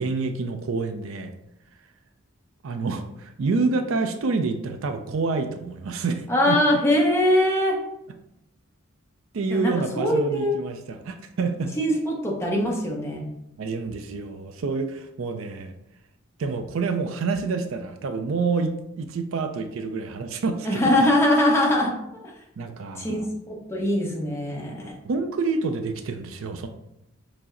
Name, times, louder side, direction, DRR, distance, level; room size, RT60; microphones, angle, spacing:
voice 1, 0.0-1.3 2.6-6.6 9.3-11.7 13.6-15.7 16.4-20.8 22.6-23.3 25.0-26.7, right 4 dB, 70° right, 7 dB, 0.4 m, -28 dB
voice 2, 6.3-7.8 9.5-10.5 11.8-13.3 20.6-21.9 23.0-25.0, left 1 dB, 10° left, -2 dB, 0.7 m, -22 dB
4.7 x 2.0 x 3.7 m, 0.83 s
head